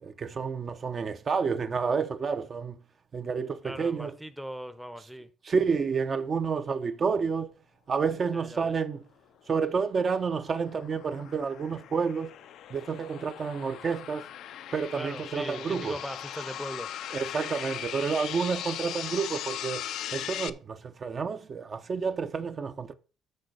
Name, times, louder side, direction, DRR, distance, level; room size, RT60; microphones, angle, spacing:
voice 1, 0.0-2.8 3.1-4.2 5.4-7.5 7.9-9.0 9.5-12.3 12.7-14.2 14.7-16.0 17.1-19.8 20.1-22.9, right 5 dB, 40° right, 0.7 m, -29 dB
voice 2, 3.6-5.3 8.3-8.7 14.9-16.9, equal, 5° right, 0.7 m, -39 dB
sound 1, 9.7-20.5, left 11 dB, 70° left, 0.5 m, -39 dB
6.5 x 6.3 x 6.3 m
cardioid pair, 110°, 0 cm